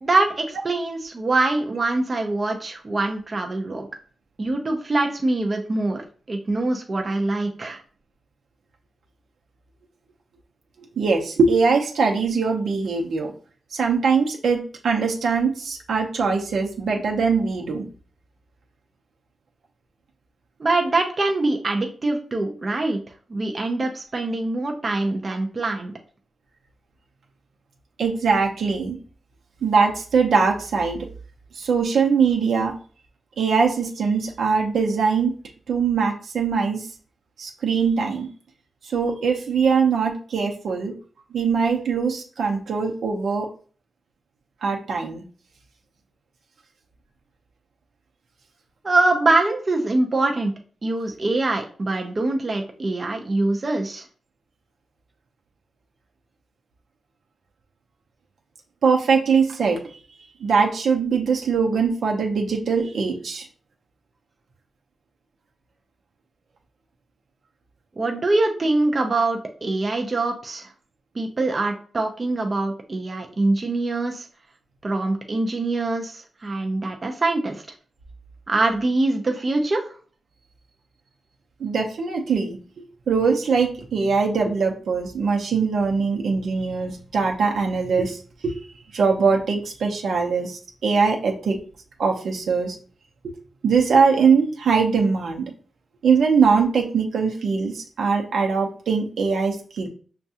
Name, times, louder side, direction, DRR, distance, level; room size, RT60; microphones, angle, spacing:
voice 1, 0.0-3.9 4.4-7.8 20.6-23.0 23.3-25.9 48.8-50.5 50.8-54.1 68.0-70.7 71.1-74.3 74.8-77.6 78.5-79.9, right 2 dB, 35° right, 2 dB, 0.6 m, -24 dB
voice 2, 11.0-13.3 13.7-17.9 28.0-29.0 29.6-31.1 31.6-32.7 33.4-35.3 35.7-36.9 37.4-38.3 38.8-40.9 41.3-43.5 44.6-45.2 58.8-60.0 60.4-63.4 81.6-82.6 83.1-88.5 88.9-91.6 92.0-92.8 93.6-95.4 96.0-99.9, right 5 dB, 80° right, 1 dB, 0.8 m, -21 dB
5.8 x 2.3 x 2.8 m, 0.41 s
wide cardioid pair, 115°, 0 cm